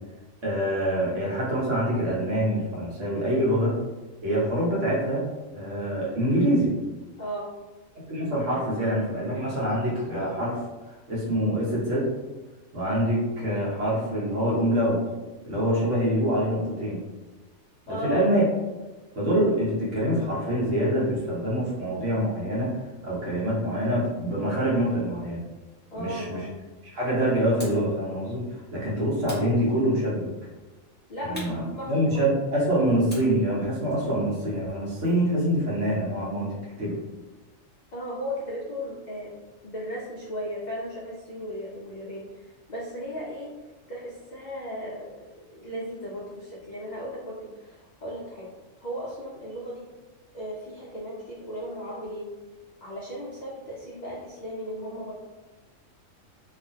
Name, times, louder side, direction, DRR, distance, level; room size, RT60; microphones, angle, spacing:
voice 1, 0.4-3.8 4.2-5.2 5.5-6.7 8.1-10.6 11.1-12.1 12.7-15.0 15.4-17.0 17.9-18.5 19.1-22.7 23.0-25.4 25.9-26.5 26.9-28.4 28.7-30.3 31.2-37.0, equal, 65° right, -6 dB, 1.3 m, -25 dB
voice 2, 7.2-7.5 17.9-18.3 25.9-26.5 31.1-32.4 37.9-43.5 43.9-48.5 48.8-49.9 50.3-52.3 52.8-55.1, equal, 65° left, -5 dB, 0.4 m, -36 dB
sound 1, 27.6-27.9 29.2-30.2 31.3-32.5 33.1-35.3, equal, 10° left, 0.7 m, -45 dB
2.8 x 2.4 x 2.6 m, 1.2 s
omnidirectional pair, 1.4 m